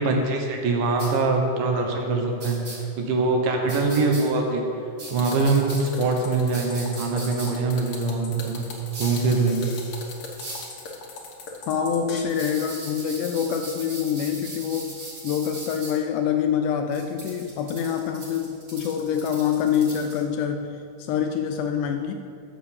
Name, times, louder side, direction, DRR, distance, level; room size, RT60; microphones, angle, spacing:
voice 1, 0.0-4.6 5.1-8.7 9.0-9.7, right 3 dB, 80° right, 2 dB, 2.7 m, -23 dB
sound 1, 1.0-1.1 2.4-2.8 3.7-4.2 5.0-5.8 6.5-7.5 8.9-9.2 10.4-10.7 12.3-15.9 16.9-20.2, right 2 dB, 50° right, 3.2 m, -39 dB
sound 2, 5.1-12.2, left 4 dB, 60° left, 1.5 m, -38 dB
voice 2, 11.7-22.1, left 8 dB, 80° left, 5 dB, 1.9 m, -26 dB
7.4 x 6.8 x 6.9 m, 2.6 s
omnidirectional pair, 3.9 m